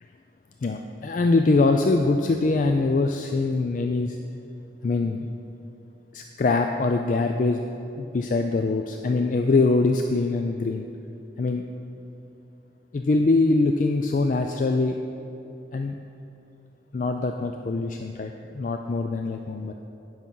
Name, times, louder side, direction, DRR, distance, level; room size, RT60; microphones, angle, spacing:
voice 1, 0.6-4.2 4.8-5.3 6.1-7.6 8.0-10.8 11.4-11.6 12.9-15.0 15.7-16.0 16.9-19.7, left 3 dB, 45° left, 4 dB, 0.3 m, -23 dB
9.9 x 6.0 x 5.4 m, 2.8 s
head